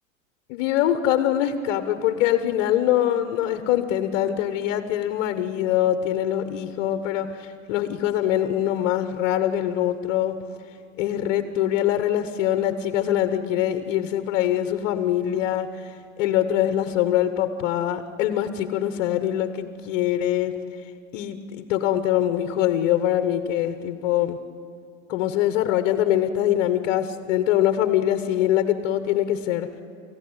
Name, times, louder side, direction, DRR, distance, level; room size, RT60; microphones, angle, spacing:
voice 1, 0.5-10.4 11.0-20.6 21.1-24.4 25.1-29.7, left 11 dB, 50° left, 10 dB, 1.3 m, -23 dB
24.5 x 15.0 x 9.8 m, 2.4 s
hypercardioid pair, 125°, 39 cm